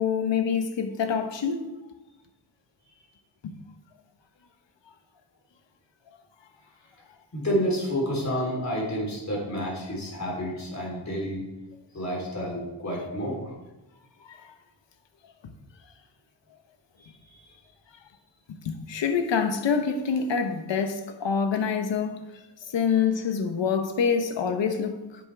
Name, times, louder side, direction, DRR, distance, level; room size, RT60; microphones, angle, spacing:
voice 1, 0.0-1.6 3.4-3.5 14.2-14.5 18.5-22.2 22.7-25.0, left 6 dB, 60° left, 1.1 m, -26 dB
voice 2, 7.3-11.4 11.9-13.5 17.0-17.5, equal, 35° left, 3.7 m, -30 dB
10.0 x 9.1 x 3.5 m
wide cardioid pair, 125°, 49 cm